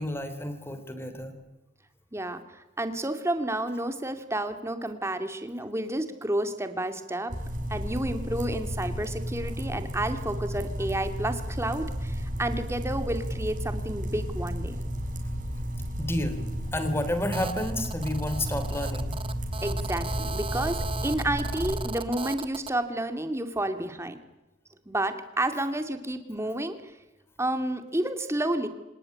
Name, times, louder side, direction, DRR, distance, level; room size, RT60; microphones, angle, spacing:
voice 1, 0.0-1.3 16.0-16.4 16.7-19.2, left 1 dB, 15° left, 10 dB, 3.5 m, -30 dB
voice 2, 2.1-7.3 7.7-14.8 19.6-24.2 24.9-26.8 27.4-28.7, right 1 dB, 15° right, 8 dB, 2.4 m, -30 dB
sound 1, 7.3-21.8, equal, 45° right, 5.6 m, -33 dB
Telephone, 17.3-22.7, right 4 dB, 30° right, 1.3 m, -38 dB
26.5 x 18.5 x 9.9 m, 1.1 s
head